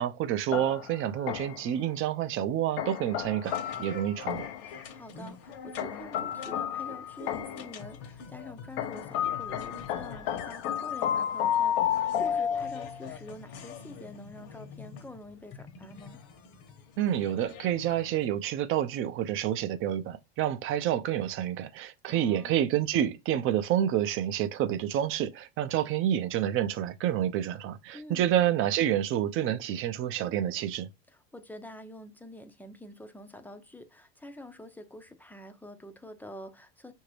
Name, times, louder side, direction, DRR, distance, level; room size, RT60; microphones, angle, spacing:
voice 1, 0.0-4.5 17.0-30.9, right 11 dB, 45° right, 0.5 m, -28 dB
sound 1, 0.5-1.7 2.8-4.7 5.8-7.7 8.8-13.1, left 9 dB, 75° left, 0.7 m, -31 dB
sound 2, 3.4-18.3, left 6 dB, 55° left, 1.0 m, -46 dB
voice 2, 4.6-16.2 22.1-22.6 27.9-28.3 31.1-36.9, left 1 dB, 5° left, 0.5 m, -47 dB
5.7 x 2.7 x 3.2 m
supercardioid pair, 110°, 30 cm